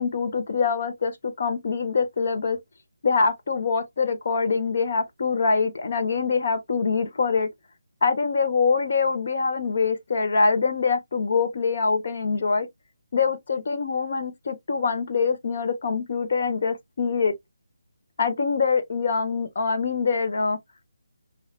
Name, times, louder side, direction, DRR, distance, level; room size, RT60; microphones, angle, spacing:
voice 1, 0.0-2.6 3.0-7.5 8.0-12.7 13.1-17.3 18.2-20.6, left 5 dB, 55° left, 1.2 m, -24 dB
5.7 x 2.8 x 2.4 m
figure-of-eight pair, 155°, 0 cm